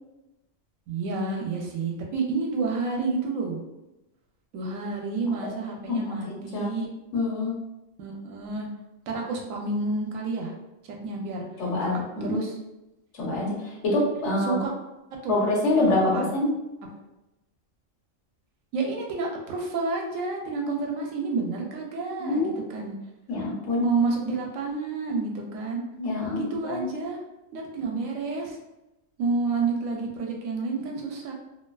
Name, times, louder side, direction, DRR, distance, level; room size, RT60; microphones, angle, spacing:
voice 1, 0.9-3.6 4.5-6.9 8.0-8.7 9.1-10.5 10.8-11.4 12.2-12.6 14.2-14.7 15.2-15.5 16.1-16.3 18.7-22.9 23.8-25.8 26.4-27.2 27.5-28.6 29.2-31.3, right 3 dB, 80° right, 0 dB, 0.9 m, -29 dB
voice 2, 6.3-6.7 7.1-7.5 11.6-12.4 13.2-13.6 13.8-14.6 15.3-16.5 22.2-22.6 23.3-23.9 26.0-26.8, left 2 dB, 65° left, -4 dB, 1.0 m, -25 dB
2.5 x 2.3 x 2.2 m, 0.95 s
omnidirectional pair, 1.4 m